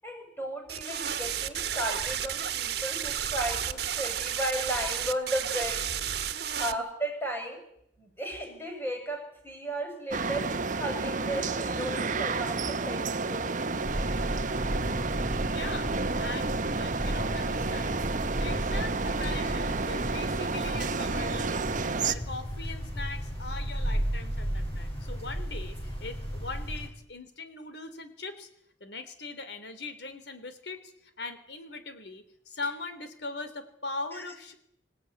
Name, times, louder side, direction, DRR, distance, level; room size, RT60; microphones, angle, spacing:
voice 1, 0.0-5.9 6.5-7.6 8.0-10.5 10.8-13.5 34.1-34.2, right 1 dB, 15° left, 3 dB, 6.7 m, -35 dB
sound 1, 0.7-6.7, right 9 dB, 60° right, 1.7 m, -32 dB
sound 2, 10.1-22.1, right 3 dB, 45° right, 1.1 m, -31 dB
sound 3, 13.8-26.9, equal, 30° left, 6.7 m, -34 dB
voice 2, 15.4-18.0 18.4-21.7 22.0-28.5 28.8-30.9 31.2-34.5, left 3 dB, 65° left, 10 dB, 3.4 m, -40 dB
26.0 x 17.5 x 9.5 m, 0.75 s
head